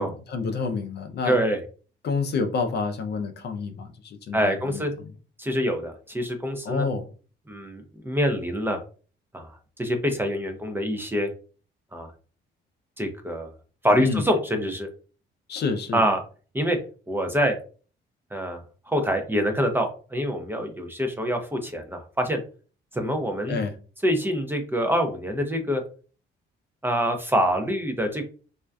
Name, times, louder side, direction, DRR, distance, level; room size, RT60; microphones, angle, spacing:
voice 1, 0.0-1.4 2.0-5.1 6.6-7.1 14.0-14.3 15.5-16.0 23.5-23.7, left 4 dB, 55° left, 0.5 m, -28 dB
voice 2, 1.2-1.6 4.3-4.9 5.4-6.9 7.5-8.8 9.3-9.5 9.8-11.3 11.9-12.1 13.0-13.5 13.8-14.9 15.9-16.2 16.5-16.8 17.1-17.6 18.3-18.6 18.9-22.4 22.9-23.6 24.0-25.8 26.8-28.3, equal, 10° right, 0.4 m, -25 dB
2.5 x 2.2 x 2.3 m
cardioid pair, 90°, 20 cm